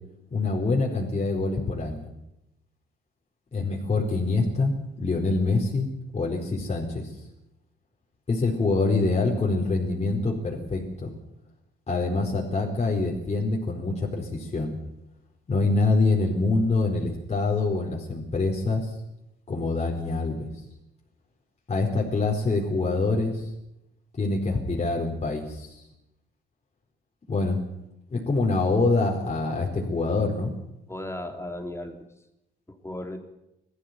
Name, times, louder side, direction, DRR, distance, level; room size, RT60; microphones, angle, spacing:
voice 1, 0.3-2.1 3.5-4.7 5.0-5.9 6.1-7.2 8.3-11.1 11.9-14.8 15.5-18.9 19.5-20.5 21.7-23.5 24.2-25.8 27.3-27.6 28.1-30.5, left 3 dB, 35° left, -2 dB, 4.6 m, -25 dB
voice 2, 30.9-32.1 32.7-33.2, left 1 dB, 15° left, 5 dB, 3.4 m, -35 dB
20.0 x 14.5 x 9.5 m, 0.87 s
cardioid pair, 90°, 20 cm